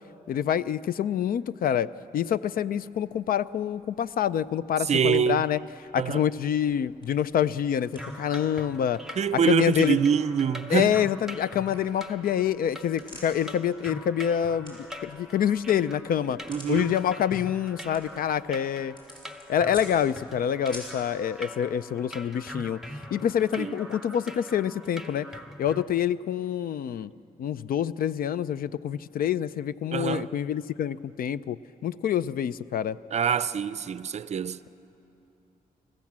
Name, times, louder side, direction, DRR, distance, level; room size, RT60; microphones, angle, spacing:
voice 1, 0.3-1.9 2.1-5.6 5.9-9.0 9.3-10.0 10.7-16.4 16.7-18.9 19.5-22.8 23.1-25.3 25.6-27.1 27.4-31.6 31.8-33.0, left 9 dB, 70° left, 0.4 m, -26 dB
sound 1, 2.9-21.1, equal, 30° left, 6.3 m, -52 dB
voice 2, 4.9-5.4 6.0-6.2 9.2-10.9 16.5-16.9 23.6-23.7 29.9-30.3 33.1-34.6, right 7 dB, 45° right, 0.5 m, -25 dB
sound 2, 8.0-25.9, left 1 dB, 5° right, 0.7 m, -43 dB
25.0 x 15.0 x 7.4 m
wide cardioid pair, 130°, 16 cm